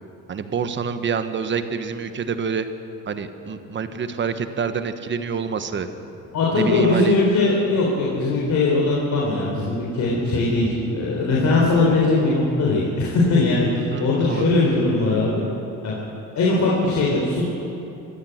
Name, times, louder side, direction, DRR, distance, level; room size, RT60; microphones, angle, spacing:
voice 1, 0.3-2.7 3.1-5.9 6.5-7.2 13.9-14.5, right 6 dB, 40° right, 9 dB, 1.2 m, -27 dB
sound 1, 5.4-11.8, left 1 dB, 5° left, 3.7 m, -41 dB
voice 2, 6.3-15.4 15.8-16.0 16.3-17.5, left 2 dB, 65° left, -4 dB, 3.8 m, -20 dB
23.0 x 14.5 x 7.9 m, 2.8 s
cardioid pair, 145°, 31 cm